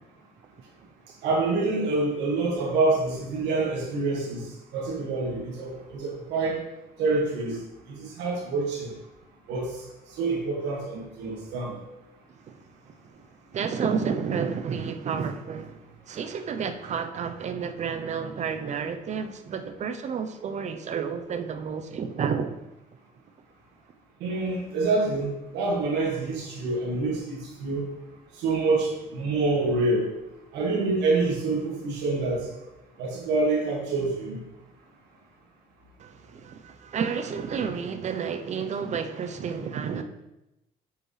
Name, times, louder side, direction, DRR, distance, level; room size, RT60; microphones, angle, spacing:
voice 1, 1.2-4.5 4.7-6.6 7.0-7.6 7.9-8.9 9.5-9.7 10.2-11.8 24.2-27.9 28.4-30.1 30.5-32.4 33.0-34.4, right 3 dB, 85° right, 2.0 m, -26 dB
voice 2, 12.9-13.2 13.5-22.6 36.0-40.0, right 6 dB, 45° right, 0.7 m, -31 dB
8.8 x 5.2 x 3.3 m
cardioid pair, 110°, 17 cm